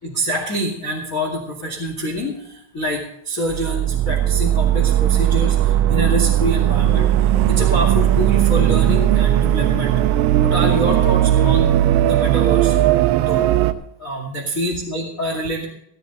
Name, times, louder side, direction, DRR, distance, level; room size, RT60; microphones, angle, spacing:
voice 1, 0.0-9.9 10.4-12.7 13.2-13.5 14.0-15.7, equal, 40° left, 0 dB, 1.1 m, -26 dB
sound 1, 3.5-13.7, right 12 dB, 85° right, 3.2 m, -17 dB
15.5 x 13.0 x 4.0 m, 0.73 s
omnidirectional pair, 5.7 m